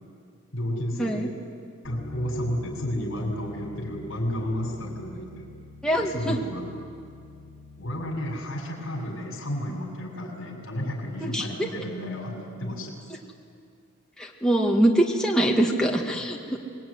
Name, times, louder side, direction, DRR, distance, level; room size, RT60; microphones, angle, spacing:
voice 1, 0.5-1.3 1.8-5.5 5.9-6.7 7.8-12.9 16.2-16.3, equal, 70° left, -2 dB, 6.1 m, -32 dB
Bass guitar, 1.8-8.1, left 3 dB, 25° left, 3.3 m, -44 dB
voice 2, 5.8-6.4 11.3-11.7 14.2-16.6, right 1 dB, 5° left, -1 dB, 2.2 m, -23 dB
24.5 x 21.5 x 9.8 m, 2.3 s
head